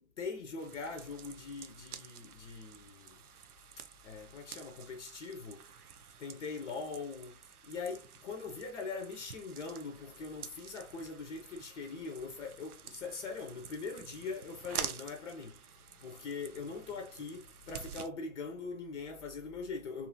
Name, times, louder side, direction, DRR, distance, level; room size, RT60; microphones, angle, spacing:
voice 1, 0.0-3.2 4.0-5.6 6.2-7.3 7.7-15.6 16.0-20.1, left 4 dB, 55° left, 0.7 m, -42 dB
sound 1, 0.6-18.1, right 8 dB, 85° right, 0.5 m, -48 dB
2.6 x 2.5 x 2.6 m
figure-of-eight pair, 125°, 43 cm